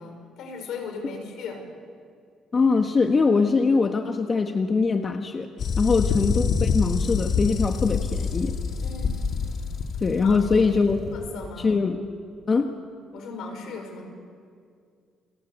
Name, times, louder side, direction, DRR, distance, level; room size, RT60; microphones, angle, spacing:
voice 1, 0.0-1.6 5.8-6.0 8.8-9.1 10.2-10.7 11.1-11.8 13.1-14.1, left 4 dB, 75° left, 4 dB, 6.0 m, -37 dB
voice 2, 2.5-5.5 5.8-8.6 10.0-11.0 11.6-12.0 12.5-12.7, left 4 dB, 40° left, 5 dB, 1.5 m, -22 dB
sound 1, 5.6-11.5, left 5 dB, 60° left, 2.3 m, -27 dB
30.0 x 18.5 x 8.3 m, 2.2 s
supercardioid pair, 75°, 0 cm